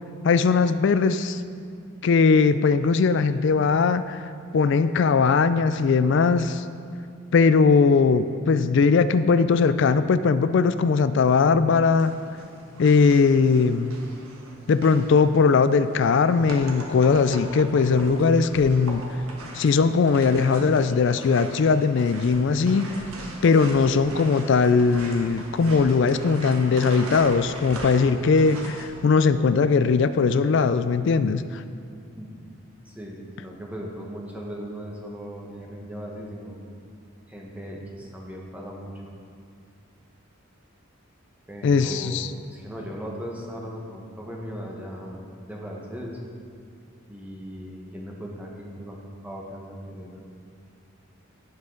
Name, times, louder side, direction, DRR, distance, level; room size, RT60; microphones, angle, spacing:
voice 1, 0.2-1.4 2.0-4.2 4.5-6.6 7.3-12.1 12.8-14.0 14.7-19.0 19.5-23.0 23.4-31.6 41.6-42.3, left 5 dB, 60° left, 13 dB, 0.3 m, -20 dB
sound 1, 11.9-28.9, right 1 dB, 90° right, 1.4 m, -40 dB
voice 2, 32.8-36.6 37.3-39.1 41.5-42.2 42.5-46.2 47.1-50.2, equal, 5° right, -2 dB, 1.1 m, -38 dB
16.5 x 5.6 x 3.9 m, 2.3 s
head